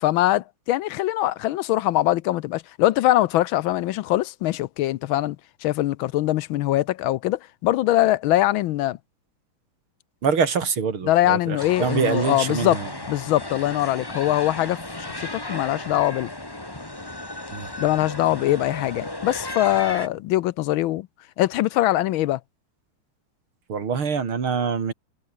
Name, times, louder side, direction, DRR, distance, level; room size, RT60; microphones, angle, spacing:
voice 1, 0.0-5.4 5.6-9.0 11.1-12.8 13.1-16.3 17.8-21.1 21.4-22.4, left 15 dB, 75° left, 1.3 m, -22 dB
voice 2, 10.2-12.9 17.5-17.7 23.7-24.9, right 6 dB, 75° right, 3.6 m, -25 dB
sound 1, 11.6-20.1, left 1 dB, 10° left, 2.0 m, -35 dB
omnidirectional pair, 2.4 m